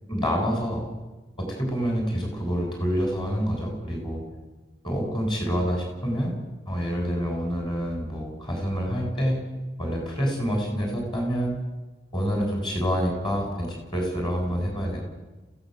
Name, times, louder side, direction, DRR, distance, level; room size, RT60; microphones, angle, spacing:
voice 1, 0.1-0.8 1.4-4.2 4.8-6.3 6.7-9.4 9.8-11.6 12.1-15.0, equal, 25° left, 1 dB, 7.7 m, -27 dB
27.5 x 17.0 x 8.2 m, 1.2 s
head